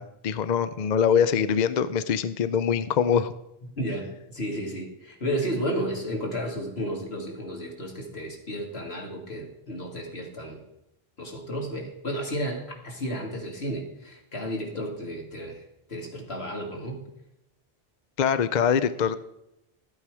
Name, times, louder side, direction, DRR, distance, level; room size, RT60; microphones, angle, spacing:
voice 1, 0.0-3.3 18.2-19.2, left 7 dB, 55° left, 13 dB, 0.6 m, -23 dB
voice 2, 3.8-10.6 11.2-17.0, equal, 85° left, 1 dB, 2.5 m, -33 dB
12.5 x 8.7 x 4.8 m, 0.84 s
omnidirectional pair, 1.0 m